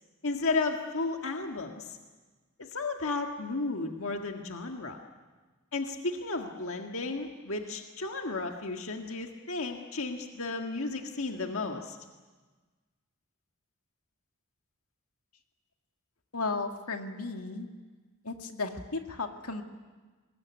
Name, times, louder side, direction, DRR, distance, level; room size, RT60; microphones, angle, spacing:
voice 1, 0.2-2.0 2.6-5.0 5.7-12.0, left 3 dB, 65° left, 3 dB, 1.7 m, -33 dB
voice 2, 16.3-17.7 18.2-19.6, left 3 dB, 85° left, 4 dB, 2.1 m, -34 dB
24.5 x 21.0 x 9.6 m, 1.3 s
head